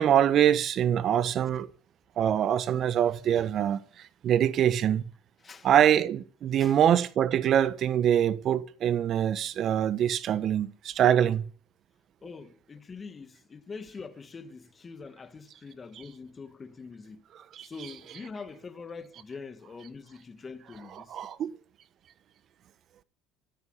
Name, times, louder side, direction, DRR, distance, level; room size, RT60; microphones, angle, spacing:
voice 1, 0.0-1.7 2.2-3.8 4.2-5.0 5.6-11.4 17.5-17.7 21.0-21.5, right 10 dB, 50° right, 1.3 m, -24 dB
voice 2, 12.2-17.2 17.6-21.2, left 4 dB, 30° left, 2.0 m, -44 dB
15.0 x 13.5 x 5.9 m
supercardioid pair, 85°, 0 cm